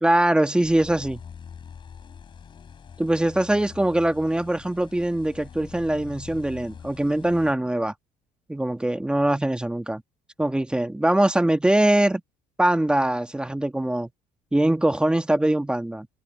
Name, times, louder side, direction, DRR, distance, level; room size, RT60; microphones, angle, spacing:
voice 1, 0.0-1.2 3.0-7.9 8.5-10.0 10.4-12.2 12.6-14.1 14.5-16.1, right 1 dB, 5° right, 1.3 m, -22 dB
sound 1, 0.6-7.5, left 7 dB, 30° left, 2.9 m, -44 dB
cardioid pair, 145°, 16 cm